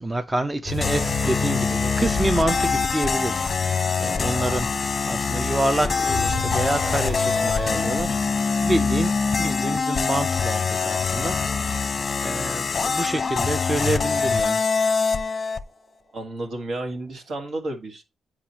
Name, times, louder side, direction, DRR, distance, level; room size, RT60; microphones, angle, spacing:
voice 1, 0.0-9.1 9.4-11.4 11.6-11.8 12.2-14.6, right 2 dB, 15° right, 0.6 m, -27 dB
sound 1, 0.6-12.1 12.5-12.7 13.3-13.4, left 3 dB, 40° right, 1.9 m, -34 dB
sound 2, 0.8-15.6, left 5 dB, 40° left, 0.6 m, -24 dB
voice 2, 16.1-18.0, right 2 dB, 65° right, 1.7 m, -32 dB
9.0 x 4.8 x 2.9 m
cardioid pair, 115°, 0 cm